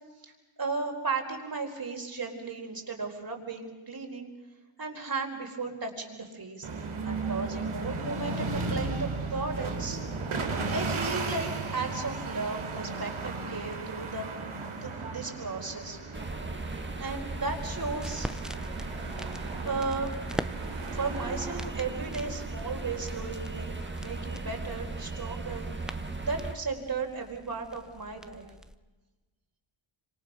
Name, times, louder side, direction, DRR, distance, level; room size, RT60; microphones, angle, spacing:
voice 1, 0.6-4.3 4.8-6.7 7.0-10.0 10.7-14.3 14.8-16.2 16.6-18.6 19.6-20.1 20.9-25.7 26.2-28.4, right 4 dB, 45° right, 2 dB, 4.6 m, -35 dB
sound 1, 6.6-25.2, right 3 dB, 70° right, 3.1 m, -36 dB
sound 2, 16.1-26.5, right 2 dB, 20° right, 1.9 m, -37 dB
sound 3, 17.5-28.8, equal, ahead, 0.8 m, -44 dB
27.5 x 26.0 x 6.3 m, 1.2 s
wide cardioid pair, 150°, 50 cm